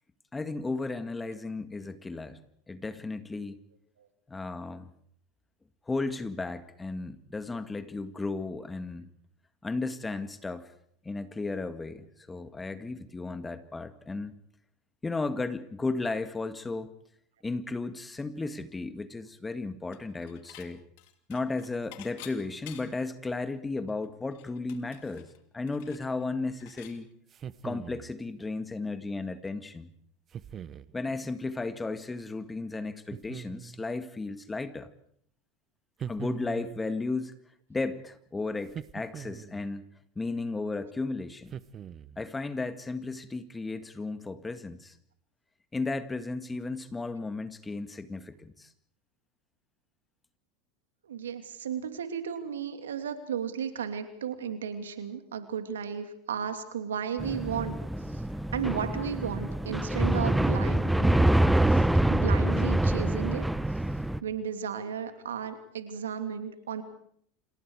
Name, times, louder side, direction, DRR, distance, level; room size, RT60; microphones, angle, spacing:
voice 1, 0.3-2.4 2.7-3.6 4.3-4.9 5.9-9.1 9.6-10.7 11.0-14.3 15.0-16.9 17.4-20.8 21.3-25.3 25.5-27.1 27.6-29.9 30.9-34.9 36.1-37.3 37.7-39.9 40.2-41.5 42.2-44.9 45.7-48.7, left 3 dB, 15° left, 10 dB, 2.0 m, -34 dB
Dishes pots and pans / Chink clink, 19.9-20.7 21.0-23.1 23.5-23.6 23.9-27.0, left 14 dB, 60° left, 2.8 m, -50 dB
sound 1, 27.3-28.1 30.3-30.9 33.1-33.9 36.0-36.9 38.7-39.7 41.5-42.3, right 8 dB, 35° right, 1.1 m, -41 dB
voice 2, 51.0-57.7 58.1-58.2 58.5-61.2 61.7-63.5 64.2-66.8, right 8 dB, 85° right, 8 dB, 3.0 m, -34 dB
sound 2, 57.2-64.2, right 1 dB, 5° right, 1.1 m, -25 dB
29.0 x 27.5 x 4.9 m, 0.66 s
hypercardioid pair, 90°, 0 cm